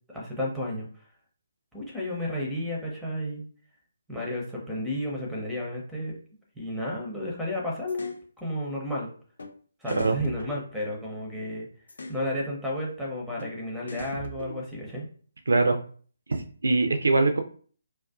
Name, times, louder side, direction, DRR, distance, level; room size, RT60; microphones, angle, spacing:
voice 1, 0.1-0.9 1.7-3.4 4.1-6.2 6.6-9.1 9.8-11.7 12.1-15.0, left 1 dB, ahead, -3 dB, 0.6 m, -32 dB
sound 1, 7.9-8.2 9.4-9.5 9.9-11.3 11.9-12.2 13.4-13.5 13.9-15.0, left 1 dB, 60° left, 0.4 m, -40 dB
voice 2, 15.5-15.8 16.3-17.4, right 3 dB, 65° right, 6 dB, 0.3 m, -23 dB
2.4 x 2.2 x 2.3 m, 0.44 s
figure-of-eight pair, 140°, 0 cm